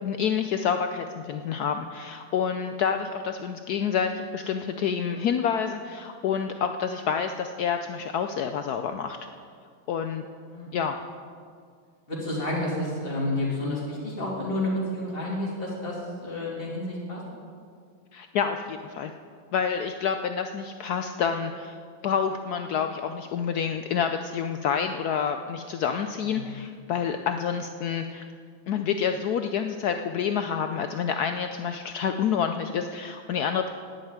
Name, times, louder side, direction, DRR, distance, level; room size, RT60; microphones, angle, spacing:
voice 1, 0.0-9.2 9.9-10.2 10.7-11.0 18.1-19.1 19.5-21.8 22.0-28.2 28.7-33.7, left 7 dB, 75° left, 7 dB, 0.9 m, -28 dB
voice 2, 12.1-17.2 26.2-26.5, left 1 dB, 25° left, -5 dB, 2.9 m, -30 dB
10.5 x 8.1 x 9.0 m, 2.1 s
omnidirectional pair, 2.2 m